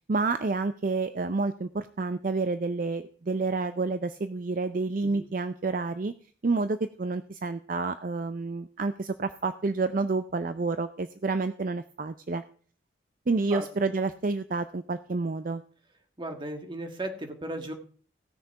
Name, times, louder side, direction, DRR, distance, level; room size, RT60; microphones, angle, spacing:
voice 1, 0.1-6.1 6.4-12.4 13.3-15.6, right 3 dB, 45° right, 11 dB, 0.5 m, -29 dB
voice 2, 16.2-17.7, right 1 dB, 25° right, 5 dB, 1.6 m, -36 dB
16.5 x 6.6 x 4.6 m, 0.43 s
head